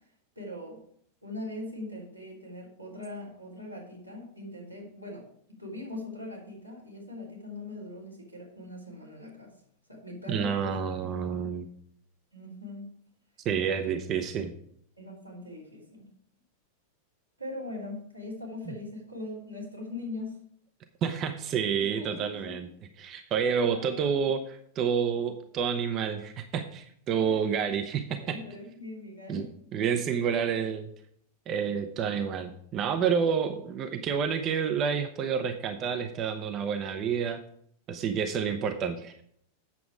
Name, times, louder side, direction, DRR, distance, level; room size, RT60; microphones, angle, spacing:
voice 1, 0.3-0.8 1.2-5.3 5.6-9.5 9.9-11.3 12.3-13.0 13.7-14.0 15.0-16.1 17.4-20.4 21.8-22.7 23.6-23.8 27.2-27.4 28.1-29.5, left 2 dB, 90° right, -4 dB, 3.1 m, -41 dB
voice 2, 10.3-11.7 13.4-14.5 21.0-22.7 23.0-28.4 29.3-29.4 29.7-30.9 31.5-37.4 37.9-39.1, right 7 dB, 35° right, 8 dB, 0.7 m, -29 dB
8.4 x 7.0 x 4.9 m, 0.66 s
figure-of-eight pair, 90°, 0 cm